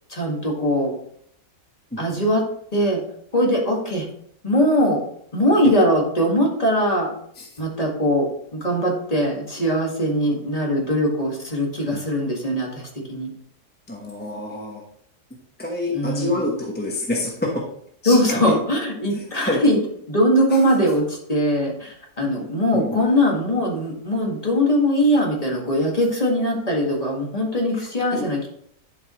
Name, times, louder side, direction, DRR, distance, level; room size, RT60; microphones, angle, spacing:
voice 1, 0.1-0.9 2.0-2.4 2.7-3.0 3.3-4.1 4.4-5.0 5.3-7.1 7.6-8.3 8.5-12.8 13.1-13.3 15.9-16.5 18.1-19.8 20.1-28.5, equal, 25° left, -2 dB, 1.8 m, -21 dB
voice 2, 13.9-14.8 15.6-17.3 18.0-18.4 19.4-19.6 22.7-23.0 28.1-28.3, left 2 dB, 5° left, -2 dB, 1.0 m, -27 dB
10.5 x 5.5 x 3.1 m, 0.66 s
omnidirectional pair, 1.7 m